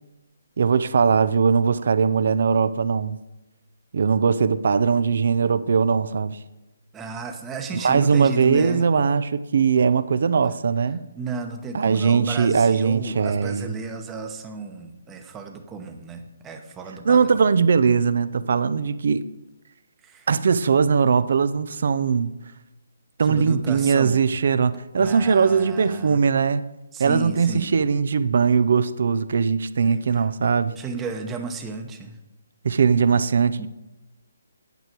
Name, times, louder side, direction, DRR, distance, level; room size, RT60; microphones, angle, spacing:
voice 1, 0.6-3.2 3.9-6.4 7.8-11.0 11.7-13.7 17.0-19.3 20.3-22.3 23.2-26.6 27.0-30.7 32.6-33.7, right 5 dB, 60° right, 15 dB, 0.5 m, -20 dB
voice 2, 6.9-8.9 11.1-17.4 20.0-20.3 23.2-24.2 25.0-26.2 26.9-27.7 29.8-30.2 30.7-32.2 33.6-33.7, right 4 dB, 15° right, 5 dB, 0.9 m, -33 dB
9.2 x 7.9 x 4.6 m, 1.0 s
hypercardioid pair, 155°, 0 cm